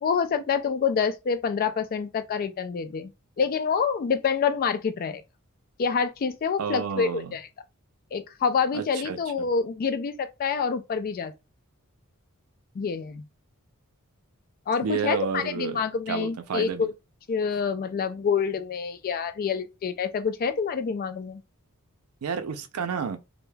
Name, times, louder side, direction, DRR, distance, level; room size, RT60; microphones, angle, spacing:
voice 1, 0.0-3.1 3.4-5.2 5.8-7.5 8.1-11.3 12.7-13.2 14.7-16.9 17.3-21.4, left 6 dB, 40° left, 0.3 m, -27 dB
voice 2, 6.6-7.3 8.7-9.5 14.8-16.9 22.2-23.2, right 6 dB, 80° right, 0.4 m, -31 dB
2.2 x 2.0 x 3.1 m
head